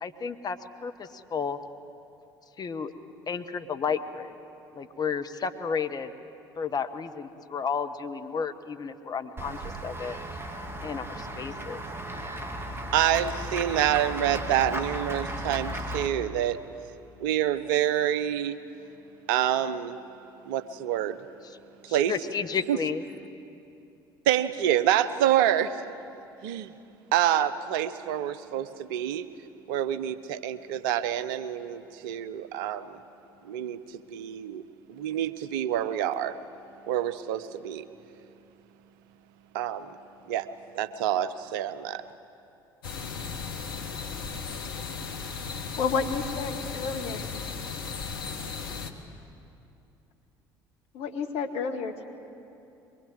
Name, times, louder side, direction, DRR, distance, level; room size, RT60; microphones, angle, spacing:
voice 1, 0.0-1.6 2.6-2.9 3.3-4.3 4.7-6.1 6.6-10.2 10.8-11.8 21.4-21.6 21.9-23.0, left 6 dB, 35° left, 8 dB, 1.3 m, -32 dB
Run / Walk footsteps / Bell, 9.4-16.1, right 1 dB, 20° right, 2.4 m, -35 dB
voice 2, 12.9-16.6 17.2-18.6 19.3-20.0 20.5-21.2 21.9-22.1 22.7-22.8 24.3-25.9 26.4-26.7 27.1-29.3 29.7-32.9 33.4-33.8 34.1-34.6 34.9-36.3 36.9-37.8 39.5-39.9 40.3-40.5 40.7-42.0, right 11 dB, 65° right, 13 dB, 0.8 m, -27 dB
sound 1, 42.8-48.9, left 5 dB, 80° left, 1.3 m, -36 dB
voice 3, 45.8-47.3 50.9-52.1, left 5 dB, 55° left, 4 dB, 1.8 m, -30 dB
23.0 x 21.5 x 7.9 m, 2.7 s
figure-of-eight pair, 60°, 12 cm